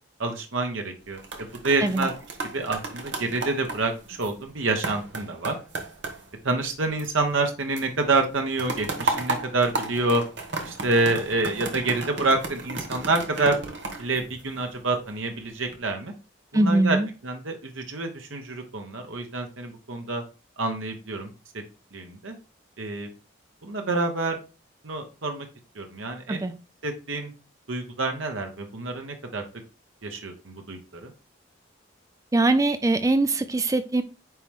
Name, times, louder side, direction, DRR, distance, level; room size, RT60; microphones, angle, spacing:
voice 1, 0.2-2.1 2.5-5.6 6.4-10.2 10.6-13.6 14.0-16.1 16.5-17.0 17.2-20.2 20.6-21.3 21.5-21.6 21.9-22.3 22.8-23.1 23.6-24.4 24.8-25.5 25.7-26.4 26.8-27.3 27.7-29.4 30.0-31.1, right 3 dB, 85° right, 1.1 m, -27 dB
sound 1, 1.0-7.5 7.8-14.9 15.4-15.8, right 2 dB, 65° right, 1.3 m, -34 dB
voice 2, 16.5-17.1 26.3-26.5 32.3-34.0, right 2 dB, 15° right, 0.3 m, -22 dB
9.2 x 3.1 x 3.6 m
head